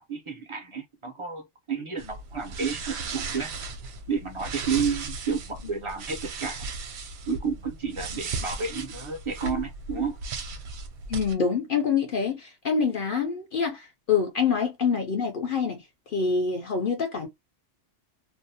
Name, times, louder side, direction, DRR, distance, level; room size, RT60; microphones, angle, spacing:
voice 1, 0.0-3.5 4.1-6.7 7.3-10.2, right 5 dB, 40° right, 0.4 m, -31 dB
sound 1, 2.0-11.3, right 4 dB, 70° right, 0.9 m, -36 dB
voice 2, 11.1-15.8 16.1-17.3, left 6 dB, 55° left, 0.7 m, -26 dB
2.6 x 2.0 x 2.7 m
omnidirectional pair, 1.2 m